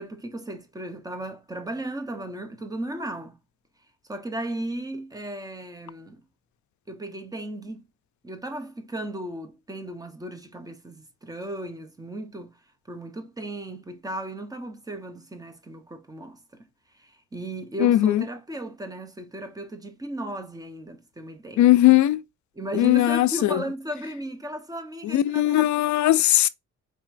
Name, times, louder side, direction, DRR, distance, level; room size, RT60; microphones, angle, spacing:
voice 1, 0.0-3.3 4.1-6.2 6.9-7.9 8.2-12.5 12.9-16.6 17.0-21.8 22.5-25.9, right 1 dB, 10° right, 0.9 m, -35 dB
voice 2, 17.8-18.2 21.6-22.2 22.7-23.6 25.0-26.5, left 14 dB, 70° left, 0.4 m, -19 dB
4.7 x 2.9 x 2.5 m
cardioid pair, 105°, 30 cm